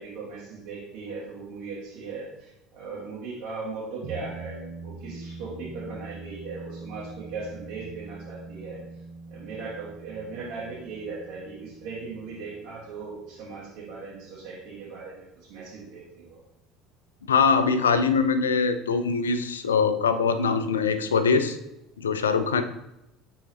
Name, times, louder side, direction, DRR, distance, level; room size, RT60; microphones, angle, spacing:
voice 1, 0.0-9.0 9.3-16.4, right 4 dB, 55° right, -8 dB, 2.0 m, -38 dB
sound 1, 4.0-14.7, right 3 dB, 70° right, 1.1 m, -43 dB
voice 2, 17.3-21.6 22.0-22.6, left 5 dB, 80° left, 11 dB, 0.4 m, -22 dB
9.1 x 3.9 x 3.0 m, 0.88 s
figure-of-eight pair, 65°, 0 cm